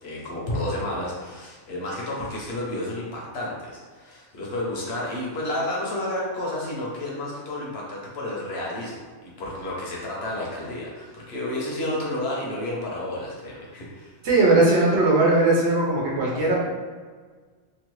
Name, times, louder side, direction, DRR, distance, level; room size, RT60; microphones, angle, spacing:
voice 1, 0.0-14.1, left 1 dB, 55° left, -4 dB, 0.9 m, -31 dB
voice 2, 14.2-16.6, right 2 dB, 60° right, -4 dB, 1.0 m, -19 dB
2.9 x 2.4 x 3.0 m, 1.5 s
omnidirectional pair, 1.4 m